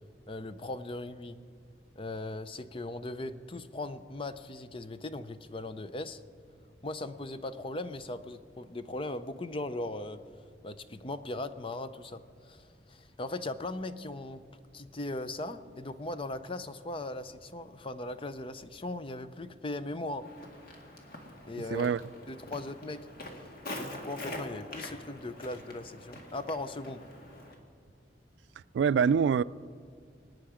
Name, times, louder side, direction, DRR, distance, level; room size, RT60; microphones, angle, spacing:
voice 1, 0.3-1.4 2.0-6.2 6.8-10.2 10.6-14.4 14.7-20.3 21.5-21.9 22.3-23.0 23.7-27.0, left 2 dB, 30° left, 0.6 m, -38 dB
Walk footsteps, 20.2-27.6, left 1 dB, 55° left, 1.9 m, -44 dB
voice 2, 21.7-22.0 28.7-29.4, right 6 dB, 90° right, 0.3 m, -24 dB
24.5 x 9.2 x 5.0 m
head